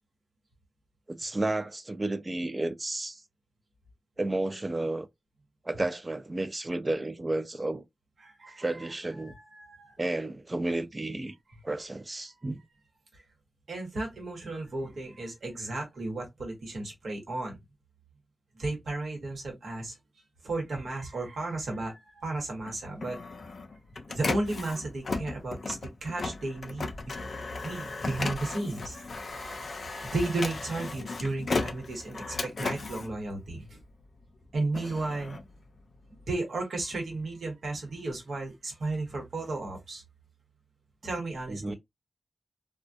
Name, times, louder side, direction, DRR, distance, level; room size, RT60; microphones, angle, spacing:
voice 1, 1.1-3.2 4.2-5.1 5.7-7.8 8.6-9.3 10.0-11.3 11.6-12.6 41.5-41.8, right 2 dB, 25° right, 0.3 m, -32 dB
voice 2, 8.2-8.6 9.2-9.9 13.7-17.6 18.6-20.0 20.4-23.2 24.1-27.1 27.6-33.8 34.5-35.4 36.1-40.0 41.0-41.8, right 2 dB, 80° right, 1.0 m, -34 dB
Printer, 22.6-34.0 34.5-36.3, left 3 dB, 60° left, 0.4 m, -36 dB
2.3 x 2.1 x 2.5 m
wide cardioid pair, 130°, 0 cm